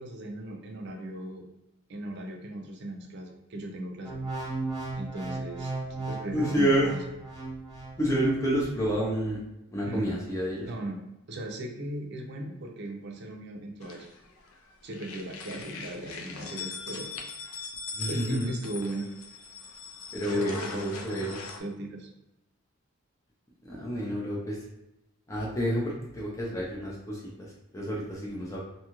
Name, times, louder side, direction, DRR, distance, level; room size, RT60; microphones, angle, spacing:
voice 1, 0.0-1.4 1.9-4.1 4.9-7.0 9.9-10.1 10.6-11.0 11.3-14.1 14.8-17.1 18.1-19.1 20.3-22.1, right 1 dB, 55° right, 1 dB, 0.5 m, -38 dB
sound 1, 4.0-8.4 8.9-9.1, right 3 dB, 20° right, 1.0 m, -36 dB
voice 2, 6.3-6.9 8.0-9.4 9.7-10.7 17.9-18.5 20.1-21.4 23.6-24.6 25.3-28.6, equal, 15° left, -5 dB, 0.5 m, -29 dB
sound 2, 13.8-14.6 14.9-21.6, left 4 dB, 80° left, 0.4 m, -41 dB
2.7 x 2.3 x 2.9 m, 0.91 s
head